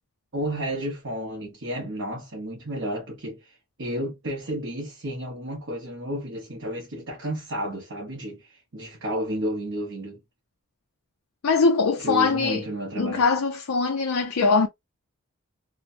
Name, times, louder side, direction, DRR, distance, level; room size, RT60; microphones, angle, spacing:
voice 1, 0.3-10.2 12.0-13.2, equal, 60° right, 0.9 m, -32 dB
voice 2, 11.4-12.7 13.0-14.7, left 4 dB, 75° left, 0.5 m, -22 dB
3.0 x 2.1 x 2.6 m
head